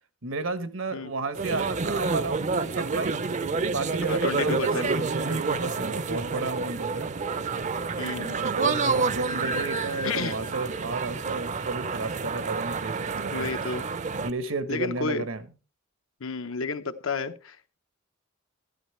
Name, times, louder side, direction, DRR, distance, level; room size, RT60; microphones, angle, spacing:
voice 1, 0.2-3.2 3.6-7.1 8.1-13.5 14.1-15.4, right 3 dB, 80° right, 1.2 m, -32 dB
sound 1, 1.3-14.3, right 4 dB, 35° right, 0.5 m, -29 dB
voice 2, 4.1-4.9 8.0-8.4 10.0-10.3 13.3-13.8 14.7-15.2 16.2-17.8, left 4 dB, 85° left, 1.0 m, -31 dB
12.5 x 12.0 x 3.2 m
head